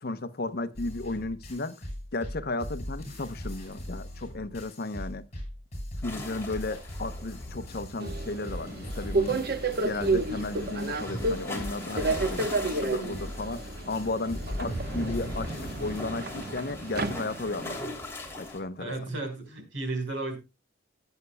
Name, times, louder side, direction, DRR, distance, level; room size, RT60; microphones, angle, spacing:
voice 1, 0.0-1.8 2.1-5.2 6.0-9.5 9.8-17.8 18.4-18.9, left 2 dB, 55° left, 0.8 m, -34 dB
sound 1, 0.7-16.0, equal, 35° left, 7.3 m, -40 dB
sound 2, 6.0-18.6, left 1 dB, 15° left, 2.9 m, -40 dB
Subway metro underground, 8.0-17.8, right 3 dB, 55° right, 1.1 m, -32 dB
voice 2, 18.8-20.4, right 2 dB, 80° right, 4.7 m, -33 dB
18.5 x 8.2 x 2.2 m
head